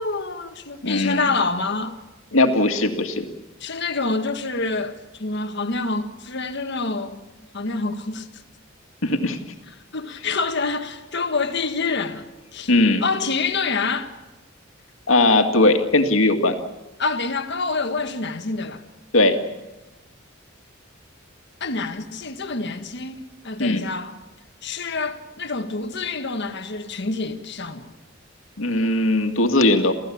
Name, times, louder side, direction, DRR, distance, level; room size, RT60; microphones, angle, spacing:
voice 1, 0.0-2.0 3.6-7.2 7.5-8.3 9.9-12.3 12.5-12.7 13.0-14.1 17.0-18.8 21.6-24.1 24.6-27.9, left 3 dB, 55° left, 1.7 m, -27 dB
voice 2, 0.8-1.3 2.3-3.2 9.0-9.4 12.7-13.1 15.1-16.5 19.1-19.4 23.6-23.8 28.6-29.9, left 2 dB, 75° left, 2.2 m, -19 dB
28.5 x 15.5 x 8.6 m
head